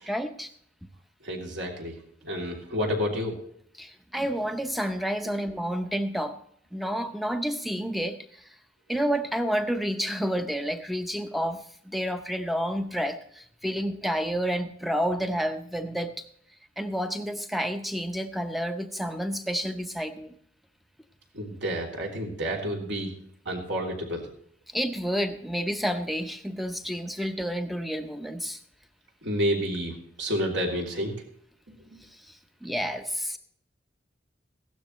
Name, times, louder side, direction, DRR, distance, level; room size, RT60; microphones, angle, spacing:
voice 1, 0.1-0.5 3.8-6.4 6.7-8.5 8.9-16.1 16.8-20.4 24.7-28.6 32.0-33.4, equal, ahead, 7 dB, 0.7 m, -30 dB
voice 2, 1.2-1.9 2.2-3.4 5.2-5.3 21.3-23.1 23.4-24.3 29.2-31.1, equal, 70° right, -1 dB, 3.0 m, -29 dB
16.0 x 12.5 x 3.1 m, 0.64 s
head